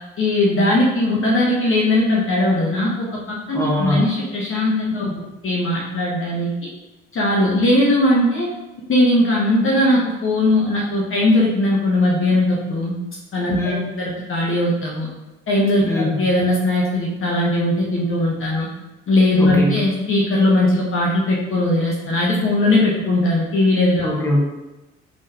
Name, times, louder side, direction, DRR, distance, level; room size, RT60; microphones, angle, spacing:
voice 1, 0.2-5.1 5.4-6.7 7.1-8.5 8.9-12.9 13.3-15.1 15.5-15.8 16.2-18.7 19.1-24.1, left 1 dB, 40° left, -4 dB, 1.1 m, -19 dB
voice 2, 3.5-4.0 13.5-13.9 15.8-16.3 19.4-19.8 24.0-24.4, left 1 dB, 10° left, -3 dB, 1.4 m, -22 dB
5.0 x 3.7 x 2.8 m, 1.0 s
figure-of-eight pair, 50°, 32 cm